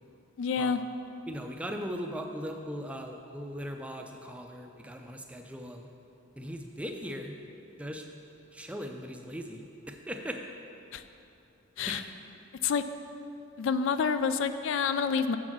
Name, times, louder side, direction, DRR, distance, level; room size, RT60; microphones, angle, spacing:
voice 1, 0.4-0.8 10.9-11.0 11.8-12.0 12.6-12.8 13.6-15.4, left 6 dB, 60° left, 10 dB, 0.3 m, -28 dB
voice 2, 1.3-5.9 6.4-7.4 7.8-8.0 8.5-10.4 11.9-12.1, equal, 5° right, 3 dB, 0.4 m, -39 dB
6.9 x 6.3 x 5.9 m, 2.7 s
head